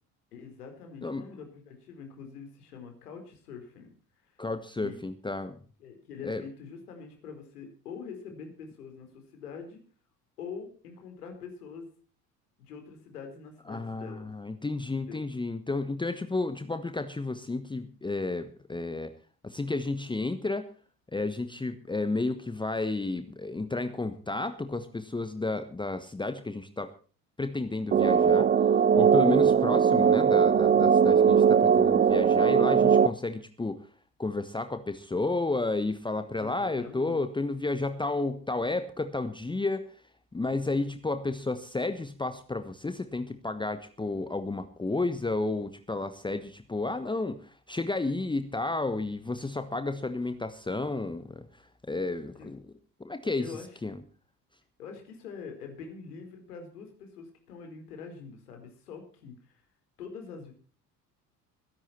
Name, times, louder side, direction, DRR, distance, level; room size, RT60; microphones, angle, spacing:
voice 1, 0.3-3.9 4.8-5.1 5.8-9.8 10.4-11.9 12.6-14.3 14.9-15.2 29.3-29.6 36.3-37.2 52.4-52.5 53.4-53.8 54.8-59.6 60.0-60.5, left 5 dB, 70° left, 4 dB, 4.5 m, -44 dB
voice 2, 4.4-5.6 6.2-6.4 13.7-19.1 19.4-20.7 21.1-26.9 27.4-33.9 34.2-39.8 40.3-51.6 51.9-52.6 53.0-53.5 53.8-53.9, left 2 dB, 10° left, 10 dB, 1.2 m, -32 dB
sound 1, 27.9-33.1, right 7 dB, 20° right, 0.6 m, -20 dB
21.5 x 11.0 x 4.4 m, 0.40 s
figure-of-eight pair, 60°, 47 cm